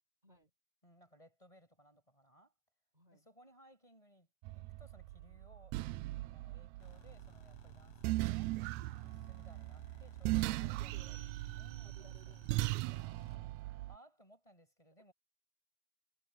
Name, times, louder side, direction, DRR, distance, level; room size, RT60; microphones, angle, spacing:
voice 1, 0.8-2.5 3.1-8.6 9.0-11.2 11.5-12.4 13.3-15.1, equal, 10° left, 6.5 m, -63 dB
voice 2, 2.9-3.3 5.2-5.4 10.3-11.2 11.8-13.2, right 2 dB, 10° right, 4.6 m, -64 dB
sound 1, 4.4-14.0, right 19 dB, 85° right, 1.6 m, -39 dB
sound 2, 6.8-13.4, left 3 dB, 50° left, 5.5 m, -61 dB
omnidirectional pair, 3.8 m